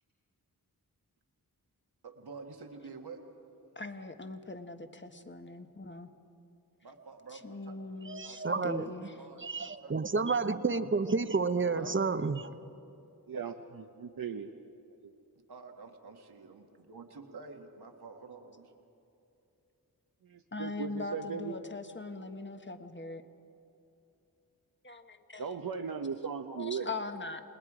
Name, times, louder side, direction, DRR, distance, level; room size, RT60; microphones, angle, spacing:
voice 1, 2.0-3.2 6.8-7.8 8.2-8.9 9.1-10.1 11.7-12.0 15.5-18.8, right 4 dB, 85° right, 1.8 m, -49 dB
voice 2, 3.7-6.1 7.3-9.3 20.5-23.2 24.8-25.5 26.5-27.4, left 3 dB, 30° left, 1.4 m, -41 dB
voice 3, 8.1-8.9 9.4-12.5, right 4 dB, 30° right, 0.8 m, -30 dB
voice 4, 13.3-14.5 15.0-15.1 20.2-21.5 25.4-26.9, right 6 dB, 65° right, 0.9 m, -38 dB
28.5 x 20.0 x 5.0 m
cardioid pair, 50°, 38 cm